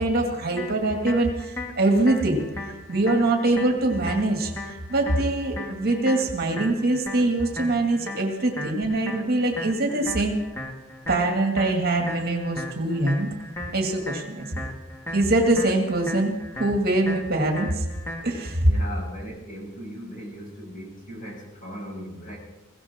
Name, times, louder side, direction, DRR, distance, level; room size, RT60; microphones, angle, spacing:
voice 1, 0.0-2.4 2.9-10.4 11.1-13.3 13.7-14.6 15.1-16.3 16.6-17.8 18.2-18.7, right 2 dB, 45° right, 2 dB, 2.3 m, -23 dB
sound 1, 0.6-18.5, left 1 dB, 10° left, 2.1 m, -37 dB
voice 2, 18.6-22.4, equal, 40° left, -2 dB, 6.4 m, -38 dB
22.0 x 16.5 x 3.7 m, 0.99 s
head